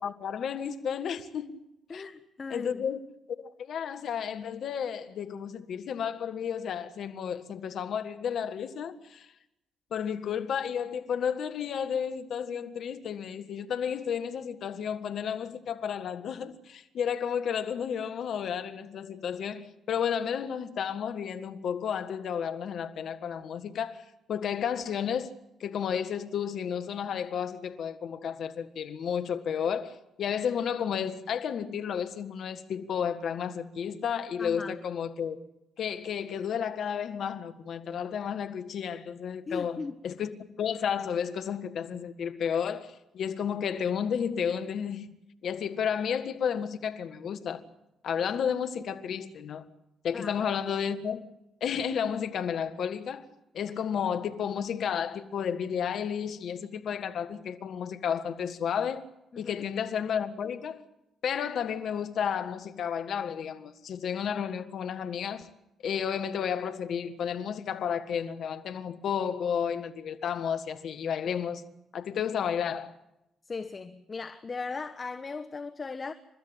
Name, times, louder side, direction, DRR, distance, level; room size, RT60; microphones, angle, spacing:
voice 1, 0.0-1.6 1.9-2.0 2.5-3.0 3.3-9.3 9.9-25.3 25.6-35.4 35.8-39.8 40.0-40.3 40.6-45.1 45.4-47.6 48.0-49.6 50.0-51.2 51.6-53.3 53.5-59.0 59.4-60.8 61.2-65.5 65.8-71.6 71.9-72.9, left 7 dB, 65° left, 1.7 m, -32 dB
voice 2, 1.9-2.8 34.4-34.8 39.5-40.0 50.1-50.3 59.3-59.5 73.5-76.1, left 4 dB, 40° left, 1.2 m, -38 dB
29.5 x 13.0 x 9.1 m
hypercardioid pair, 50°, 0 cm